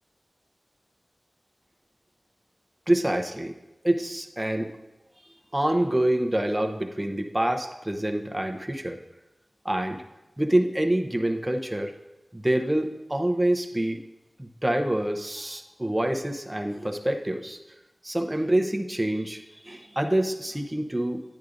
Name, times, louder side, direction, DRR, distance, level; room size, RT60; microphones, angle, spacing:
voice 1, 2.9-3.5 3.8-4.7 5.5-9.0 9.6-10.0 10.4-11.9 12.3-14.0 14.4-17.6 18.0-21.2, right 1 dB, 15° right, 5 dB, 0.8 m, -26 dB
11.0 x 10.0 x 2.6 m, 1.0 s
wide cardioid pair, 75°, 0 cm